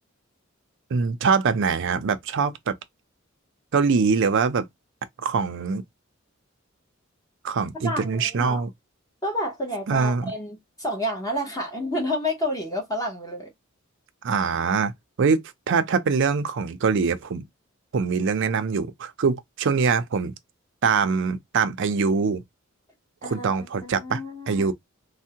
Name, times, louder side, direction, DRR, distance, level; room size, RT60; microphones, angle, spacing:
voice 1, 0.9-2.7 3.7-4.7 5.2-5.8 7.4-8.7 9.9-10.3 14.2-14.9 15.2-15.4 15.7-17.4 17.9-20.3 20.8-22.4 23.2-24.2 24.5-24.7, right 5 dB, 60° right, 0.5 m, -23 dB
voice 2, 7.8-8.6 9.2-13.5 23.2-24.7, left 1 dB, 15° left, 0.8 m, -30 dB
3.3 x 2.1 x 2.8 m
head